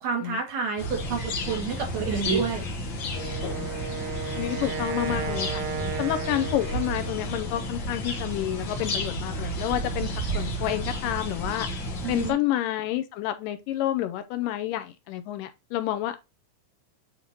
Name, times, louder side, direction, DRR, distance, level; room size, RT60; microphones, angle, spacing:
voice 1, 0.0-2.7 12.0-12.4, right 6 dB, 60° right, 2.6 m, -30 dB
sound 1, 0.8-12.3, left 1 dB, 65° left, 1.1 m, -32 dB
sound 2, 0.8-10.4, right 5 dB, 35° right, 1.7 m, -39 dB
Wind instrument woodwind instrument, 3.1-7.4, right 8 dB, 75° right, 1.7 m, -34 dB
voice 2, 4.3-5.6 6.0-11.7 12.1-16.2, left 13 dB, 85° left, 2.2 m, -29 dB
8.5 x 2.9 x 3.9 m
omnidirectional pair, 4.0 m